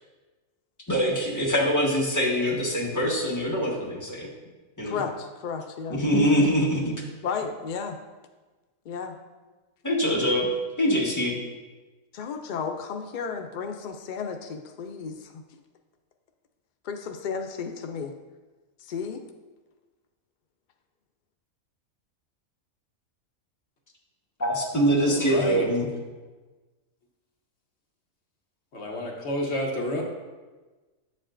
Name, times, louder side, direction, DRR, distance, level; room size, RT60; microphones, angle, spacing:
voice 1, 0.9-4.3 4.8-4.9 5.9-6.9 9.8-10.5 10.8-11.3 24.4-25.9, equal, 15° left, -4 dB, 1.3 m, -24 dB
voice 2, 4.8-6.0 7.2-8.0 8.9-9.2 12.1-15.4 16.8-18.1 18.8-19.2, left 6 dB, 80° left, 5 dB, 0.4 m, -33 dB
voice 3, 25.0-25.7 28.7-30.0, left 1 dB, 55° left, 0 dB, 1.2 m, -29 dB
8.8 x 7.6 x 2.5 m, 1.3 s
omnidirectional pair, 1.4 m